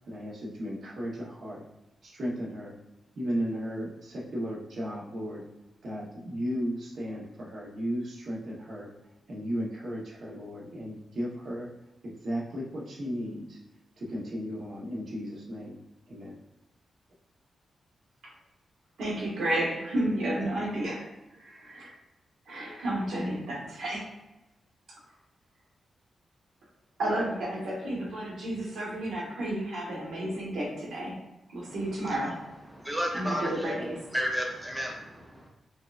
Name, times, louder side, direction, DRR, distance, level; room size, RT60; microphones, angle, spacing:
voice 1, 0.0-1.6 2.0-2.7 3.1-5.4 5.8-8.9 9.3-11.7 12.0-13.6 14.0-15.8 16.1-16.3, equal, 50° right, -4 dB, 0.9 m, -35 dB
voice 2, 19.0-21.1 21.3-21.9 22.5-24.1 27.0-31.2 31.5-32.4 33.1-33.9, right 1 dB, 80° right, -4 dB, 1.3 m, -31 dB
voice 3, 31.6-32.3 32.6-35.5, equal, 5° right, 0 dB, 0.4 m, -34 dB
4.5 x 2.4 x 2.4 m, 0.97 s
wide cardioid pair, 155°, 0 cm